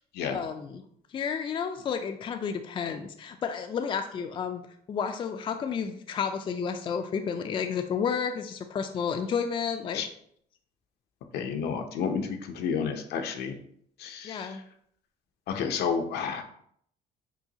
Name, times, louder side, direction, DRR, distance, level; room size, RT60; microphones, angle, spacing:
voice 1, 0.3-0.7 1.1-4.6 4.9-10.0 14.2-14.6, left 6 dB, 30° left, 6 dB, 0.3 m, -31 dB
voice 2, 11.3-13.6 14.0-14.6 15.5-16.4, left 6 dB, 70° left, 6 dB, 0.6 m, -31 dB
5.5 x 2.2 x 2.7 m, 0.65 s
cardioid pair, 110°, 17 cm